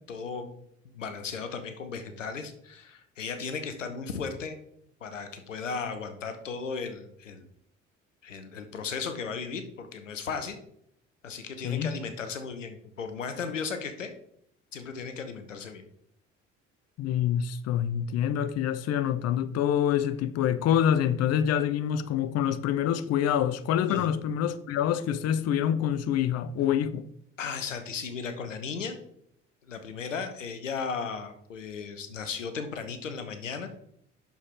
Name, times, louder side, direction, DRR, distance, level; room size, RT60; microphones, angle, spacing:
voice 1, 0.1-0.6 0.8-4.6 5.0-7.5 8.2-10.5 11.2-14.1 14.7-15.8 23.9-24.1 27.4-29.0 29.7-33.7, left 5 dB, 90° left, 0.7 m, -36 dB
voice 2, 11.6-12.0 17.0-27.1, left 9 dB, 45° left, 0.6 m, -26 dB
7.1 x 6.4 x 3.7 m
figure-of-eight pair, 55°, 37 cm